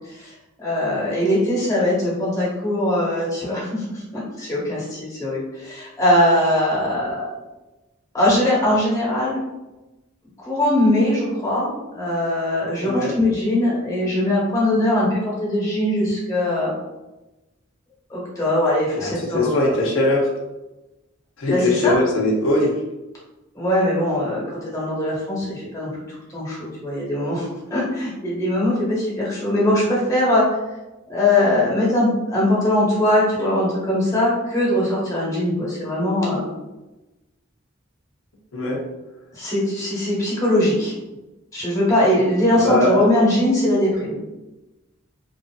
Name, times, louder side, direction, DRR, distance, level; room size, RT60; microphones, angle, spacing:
voice 1, 0.6-7.4 8.1-9.4 10.4-11.7 11.9-16.7 18.1-19.5 21.4-22.0 23.5-25.9 26.3-30.6 31.1-36.5 39.3-40.9 41.5-44.2, left 1 dB, 15° left, -6 dB, 1.0 m, -21 dB
voice 2, 18.9-20.3 21.4-22.7 38.5-38.8 42.6-42.9, left 2 dB, 90° left, -2 dB, 0.6 m, -20 dB
3.0 x 2.5 x 2.3 m, 1.0 s
head